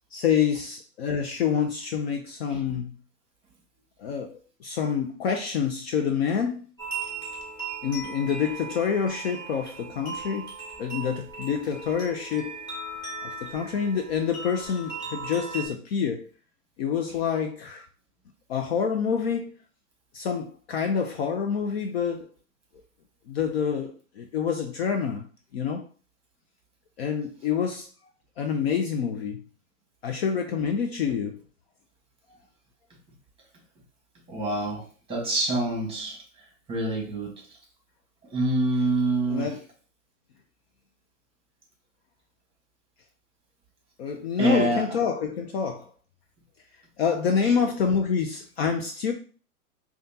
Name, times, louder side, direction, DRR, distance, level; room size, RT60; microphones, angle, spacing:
voice 1, 0.1-3.0 4.0-6.7 7.8-10.5 10.8-12.5 13.2-16.3 16.8-17.9 18.5-19.5 20.1-22.3 23.3-25.2 25.5-25.9 27.0-27.9 28.4-29.4 30.0-31.4 39.3-39.6 44.0-45.9 47.0-49.1, left 7 dB, 45° left, 0.5 m, -27 dB
sound 1, 6.8-15.7, right 4 dB, 10° left, 1.5 m, -38 dB
voice 2, 34.3-36.2 36.7-37.3 38.3-39.6 44.4-44.9 47.4-47.6, right 2 dB, 10° right, 1.3 m, -26 dB
5.0 x 2.4 x 2.7 m
hypercardioid pair, 125°, 45 cm